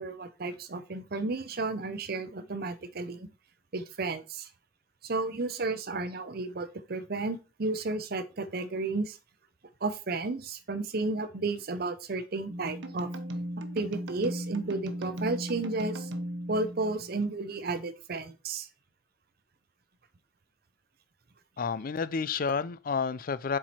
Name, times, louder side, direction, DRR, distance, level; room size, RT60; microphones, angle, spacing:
voice 1, 0.0-3.3 3.7-4.5 5.0-9.2 9.8-13.1 13.7-16.1 16.5-18.7, right 3 dB, 55° right, 0.7 m, -33 dB
sound 1, 12.5-17.3, equal, 85° right, 1.0 m, -37 dB
voice 2, 21.6-23.6, left 5 dB, 50° left, 0.4 m, -30 dB
7.3 x 4.7 x 4.2 m
head